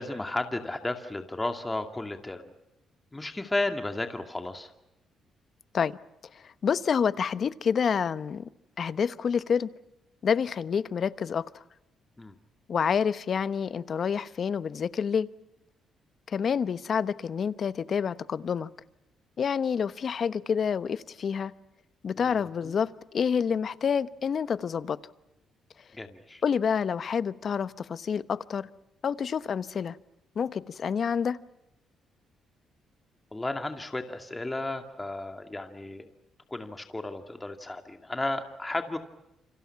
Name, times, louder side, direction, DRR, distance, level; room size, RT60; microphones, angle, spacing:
voice 1, 0.0-2.5 3.1-4.7 12.2-12.3 22.2-22.8 25.9-26.4 33.3-36.1 36.5-39.0, left 2 dB, 15° left, 7 dB, 2.4 m, -33 dB
voice 2, 6.6-8.5 8.8-9.7 10.2-11.4 12.7-15.3 16.3-18.7 19.4-21.5 22.0-25.0 26.4-28.7 29.0-29.9 30.4-31.4, left 7 dB, 50° left, 15 dB, 1.0 m, -28 dB
28.5 x 26.0 x 5.9 m, 0.91 s
cardioid pair, 90°, 0 cm